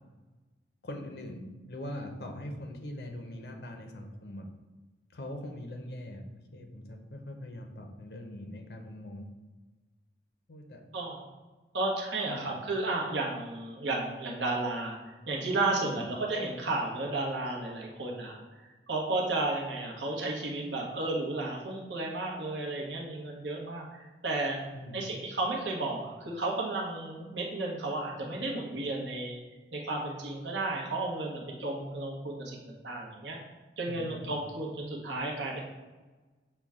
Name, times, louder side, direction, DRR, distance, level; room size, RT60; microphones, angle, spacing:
voice 1, 0.8-4.5 5.1-6.2 6.5-9.3 10.5-10.8 12.3-12.5 15.8-16.1 24.7-25.1 33.9-34.4, left 1 dB, 65° left, 4 dB, 0.6 m, -42 dB
voice 2, 11.7-15.0 15.3-18.4 18.9-24.6 24.9-29.4 29.7-33.4 33.8-35.6, right 2 dB, 85° right, -1 dB, 1.0 m, -33 dB
5.8 x 2.2 x 3.6 m, 1.2 s
head